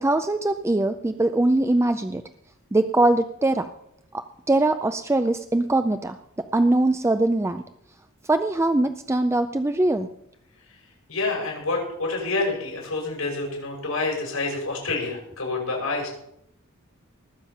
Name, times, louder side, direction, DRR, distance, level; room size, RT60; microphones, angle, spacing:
voice 1, 0.0-2.2 2.7-3.7 4.1-7.6 8.3-10.1, right 2 dB, 15° right, 9 dB, 0.4 m, -22 dB
voice 2, 11.1-16.1, left 3 dB, 90° left, -1 dB, 5.9 m, -28 dB
19.5 x 7.5 x 5.6 m, 0.75 s
head